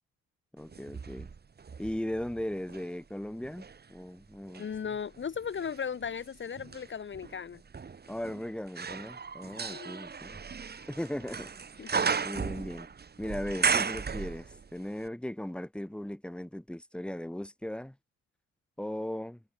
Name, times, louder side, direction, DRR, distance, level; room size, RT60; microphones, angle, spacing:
voice 1, 0.5-1.3 1.8-3.6 3.9-4.7 8.1-10.4 10.9-11.6 12.2-12.9 13.2-17.9 18.8-19.4, left 1 dB, 5° left, 2.5 m, -37 dB
sound 1, 0.7-2.9 3.4-14.8 15.1-15.2, right 5 dB, 35° right, 1.9 m, -35 dB
voice 2, 4.6-7.6 9.7-9.9 11.8-11.9, left 7 dB, 40° left, 1.4 m, -36 dB
cardioid pair, 90°, 30 cm